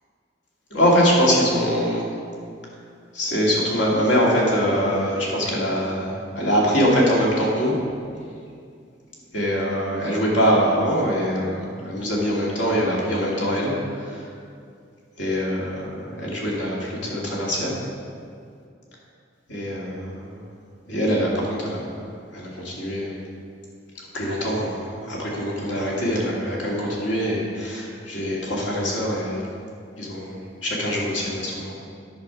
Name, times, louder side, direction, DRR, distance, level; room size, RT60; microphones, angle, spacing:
voice 1, 0.7-2.1 3.1-7.8 9.3-13.7 14.0-14.3 15.2-17.7 19.5-20.4 20.9-21.9 22.3-23.1 24.1-29.5 30.0-31.7, equal, 80° left, -4 dB, 2.3 m, -23 dB
10.0 x 5.5 x 5.7 m, 2.3 s
head